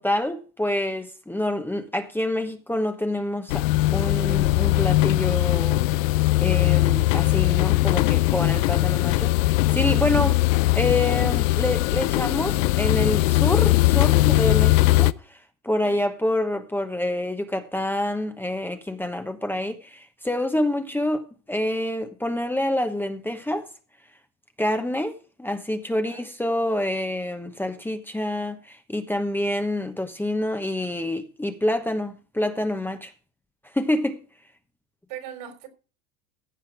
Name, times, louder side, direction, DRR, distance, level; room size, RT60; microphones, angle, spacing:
voice 1, 0.0-3.6 3.9-5.8 6.4-10.4 10.7-15.4 15.6-23.7 24.6-33.1 33.7-34.2, left 1 dB, 5° left, 1.0 m, -27 dB
sound 1, 3.5-15.1, left 18 dB, 70° left, 0.6 m, -20 dB
voice 2, 25.9-26.3 35.1-35.7, right 9 dB, 65° right, 4.0 m, -40 dB
15.0 x 5.6 x 6.0 m
supercardioid pair, 115°, 40 cm